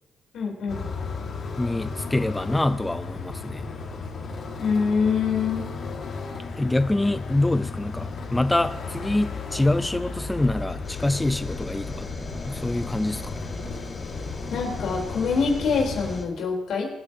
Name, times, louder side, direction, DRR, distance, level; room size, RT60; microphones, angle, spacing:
voice 1, 0.3-0.8 4.6-5.6 14.5-16.9, left 5 dB, 75° left, 0 dB, 4.0 m, -25 dB
sound 1, 0.7-16.2, left 4 dB, 55° left, 1.7 m, -34 dB
voice 2, 1.6-3.7 6.6-12.1 12.4-13.3, left 2 dB, 10° left, 13 dB, 0.3 m, -25 dB
sound 2, 10.8-16.2, left 3 dB, 30° left, 2.0 m, -37 dB
25.0 x 9.1 x 2.9 m, 1.0 s
cardioid pair, 90°, 0 cm